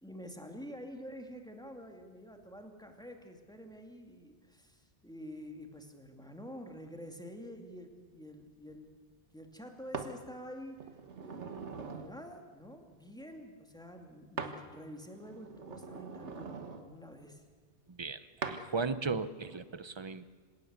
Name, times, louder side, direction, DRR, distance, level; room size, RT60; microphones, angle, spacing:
voice 1, 0.0-8.9 9.3-10.8 11.2-11.4 11.9-17.4, equal, 5° left, 4 dB, 2.4 m, -48 dB
sound 1, 9.9-10.1 10.8-12.1 14.4-14.6 15.0-16.8 18.4-18.6 19.3-19.6, right 5 dB, 90° right, 1.8 m, -42 dB
voice 2, 17.9-20.2, right 4 dB, 25° right, 14 dB, 0.8 m, -36 dB
26.0 x 17.5 x 8.2 m, 1.5 s
omnidirectional pair, 1.1 m